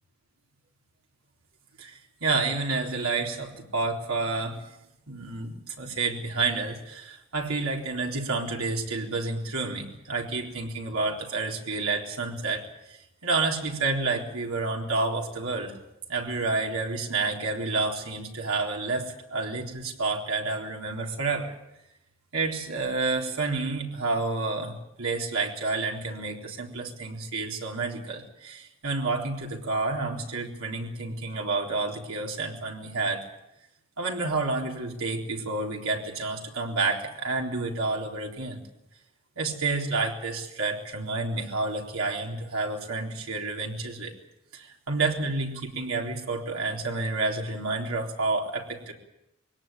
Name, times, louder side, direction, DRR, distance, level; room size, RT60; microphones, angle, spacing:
voice 1, 1.8-4.6 5.1-15.8 16.1-21.5 22.3-33.3 34.0-38.6 39.4-44.1 44.5-48.9, right 3 dB, 85° right, 0 dB, 3.9 m, -29 dB
22.0 x 18.0 x 9.1 m, 0.89 s
head